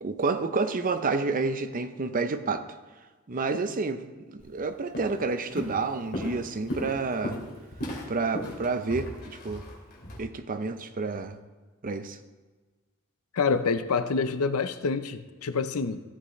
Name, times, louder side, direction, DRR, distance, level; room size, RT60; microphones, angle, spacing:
voice 1, 0.0-2.6 3.3-4.0 4.3-7.4 8.1-9.6 10.2-11.4 11.8-12.2, right 4 dB, 40° right, 10 dB, 0.6 m, -29 dB
Walk footsteps, 4.4-4.6 4.9-5.3 5.6-10.2, equal, 50° left, 2.6 m, -36 dB
voice 2, 13.3-16.0, left 4 dB, 80° left, 11 dB, 0.6 m, -27 dB
15.0 x 8.1 x 3.1 m, 1.3 s
head